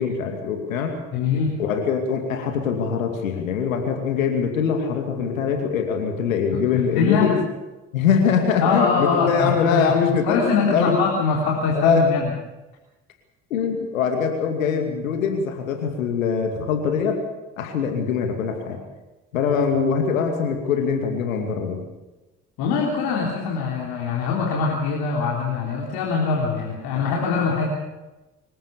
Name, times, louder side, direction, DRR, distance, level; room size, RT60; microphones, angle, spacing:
voice 1, 0.0-1.0 1.6-7.4 7.9-11.0 11.7-12.0 13.5-17.2 17.6-18.8 19.3-21.8, left 6 dB, 80° left, 4 dB, 2.5 m, -23 dB
voice 2, 1.1-1.6 6.5-7.3 8.6-12.3 22.6-27.7, left 5 dB, 65° left, -2 dB, 3.8 m, -23 dB
25.5 x 16.0 x 7.2 m, 1.0 s
figure-of-eight pair, 50°, 39 cm